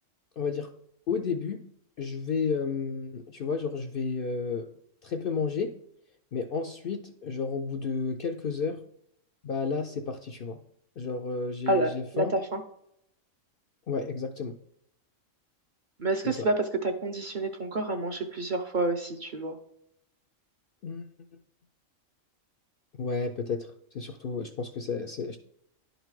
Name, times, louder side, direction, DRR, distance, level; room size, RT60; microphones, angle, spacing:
voice 1, 0.4-0.7 1.1-1.6 2.0-4.7 5.0-5.8 6.3-8.8 9.4-10.6 11.0-12.4 13.9-14.6 16.2-16.5 20.8-21.1 23.0-25.4, left 5 dB, 60° left, 5 dB, 0.6 m, -32 dB
voice 2, 11.7-12.6 16.0-16.5 16.8-19.5, right 2 dB, 50° right, 4 dB, 0.6 m, -28 dB
11.0 x 3.9 x 4.7 m, 0.74 s
omnidirectional pair, 1.4 m